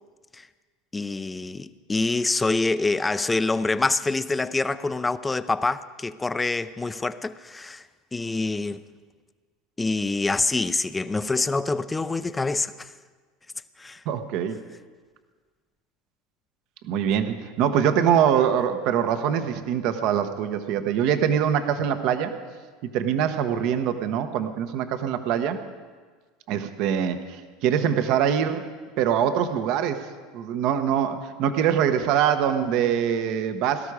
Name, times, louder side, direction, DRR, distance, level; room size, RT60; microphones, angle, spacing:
voice 1, 0.9-7.8 8.1-8.8 9.8-12.9 13.8-14.0, left 3 dB, 15° left, 0.5 m, -26 dB
voice 2, 14.1-14.6 16.8-22.4 22.8-25.6 26.5-28.7 29.0-33.9, right 8 dB, 60° right, 1.0 m, -24 dB
17.5 x 12.5 x 4.9 m
supercardioid pair, 105°, 0 cm